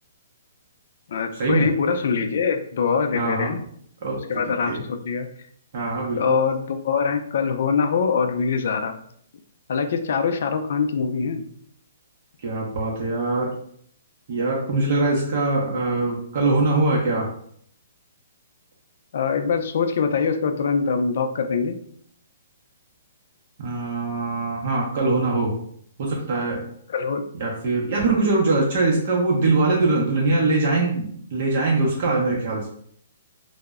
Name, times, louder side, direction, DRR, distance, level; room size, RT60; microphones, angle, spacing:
voice 1, 1.1-3.6 4.3-5.3 6.2-9.0 9.7-11.4 19.1-21.8 26.9-27.2, left 5 dB, 60° left, 6 dB, 0.3 m, -23 dB
voice 2, 3.1-3.5 4.0-4.2 4.5-4.8 5.7-6.4 12.4-13.5 14.3-17.3 23.6-25.6 26.0-26.6 27.4-32.7, right 3 dB, 45° right, -3 dB, 0.6 m, -22 dB
2.0 x 2.0 x 3.4 m, 0.64 s
hypercardioid pair, 160°, 0 cm